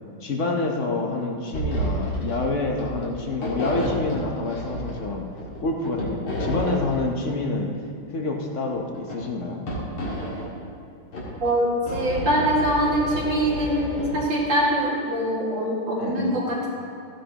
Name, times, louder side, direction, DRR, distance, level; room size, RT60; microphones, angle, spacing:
voice 1, 0.2-5.2 5.6-7.7 8.1-9.6 16.0-16.4, left 3 dB, 50° left, 1 dB, 0.9 m, -27 dB
sound 1, 1.5-2.4 2.7-3.1 3.4-5.1 5.4-7.0 8.7-9.2 9.7-10.5 11.1-14.2, equal, 80° left, 2.9 m, -30 dB
voice 2, 11.4-16.7, equal, 65° right, -5 dB, 2.8 m, -23 dB
15.0 x 10.0 x 2.9 m, 2.4 s
omnidirectional pair, 2.2 m